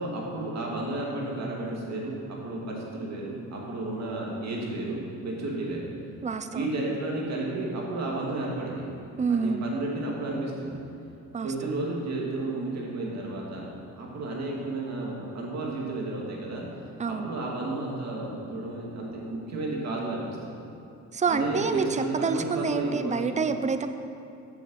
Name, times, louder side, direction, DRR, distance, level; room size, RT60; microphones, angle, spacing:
voice 1, 0.0-5.8 6.5-8.9 9.3-10.8 11.4-13.7 14.0-16.6 17.1-20.6 21.3-23.4, right 2 dB, 60° right, -2 dB, 2.5 m, -32 dB
voice 2, 6.2-6.6 9.2-9.6 11.3-11.5 17.0-17.3 21.1-23.9, right 5 dB, 25° right, 9 dB, 0.6 m, -27 dB
9.0 x 7.2 x 6.4 m, 2.6 s
cardioid pair, 90°, 30 cm